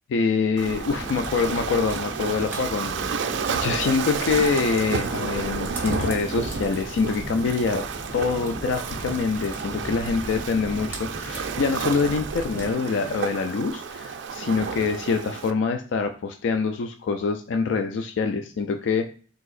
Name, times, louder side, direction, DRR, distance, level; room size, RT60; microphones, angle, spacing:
voice 1, 0.1-3.1 3.5-7.9 8.1-19.1, left 5 dB, 70° left, 6 dB, 0.3 m, -25 dB
Waves surf, 0.6-15.5, right 6 dB, 65° right, 0.4 m, -31 dB
sound 1, 0.8-12.7, equal, 10° right, 0.8 m, -38 dB
4.6 x 4.0 x 2.5 m, 0.42 s
head